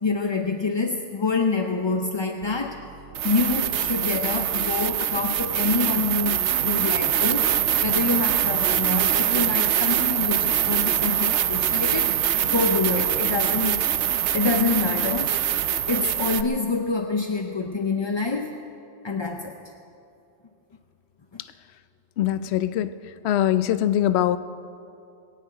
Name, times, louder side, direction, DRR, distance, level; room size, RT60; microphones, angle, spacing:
voice 1, 0.0-2.8 3.2-7.5 7.8-12.1 12.4-13.8 14.3-15.4 15.9-18.6 19.0-19.6 21.3-21.4, left 4 dB, 35° left, 4 dB, 0.5 m, -26 dB
sound 1, 2.4-2.5 3.1-16.4, right 10 dB, 90° right, 0.9 m, -23 dB
voice 2, 22.2-22.9 23.2-24.4, left 12 dB, 75° left, 12 dB, 0.8 m, -22 dB
21.0 x 7.5 x 8.9 m, 2.6 s
omnidirectional pair, 1.1 m